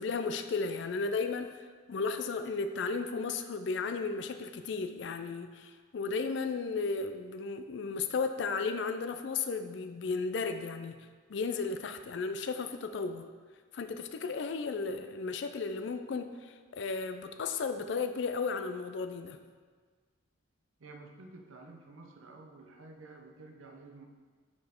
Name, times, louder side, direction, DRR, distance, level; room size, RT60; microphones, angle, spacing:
voice 1, 0.0-1.5 1.9-11.0 11.3-13.3 13.7-19.4, left 4 dB, 65° left, 8 dB, 0.4 m, -34 dB
voice 2, 20.8-24.1, right 3 dB, 90° right, 3 dB, 0.7 m, -51 dB
5.2 x 4.2 x 4.4 m, 1.5 s
head